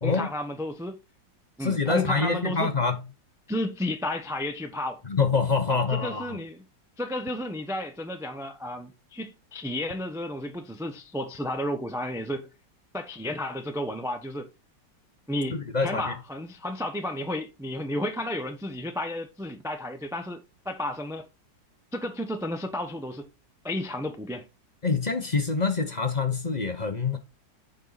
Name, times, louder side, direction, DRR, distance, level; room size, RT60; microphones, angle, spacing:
voice 1, 0.0-1.0 1.6-2.7 3.5-5.0 5.7-6.6 7.0-12.5 12.9-14.5 15.3-21.3 21.9-23.3 23.6-24.5, left 1 dB, 5° right, 0.4 m, -32 dB
voice 2, 1.6-3.0 5.0-6.4 15.5-16.2 24.8-27.2, left 4 dB, 30° left, 0.9 m, -26 dB
6.9 x 5.5 x 4.1 m
omnidirectional pair, 2.0 m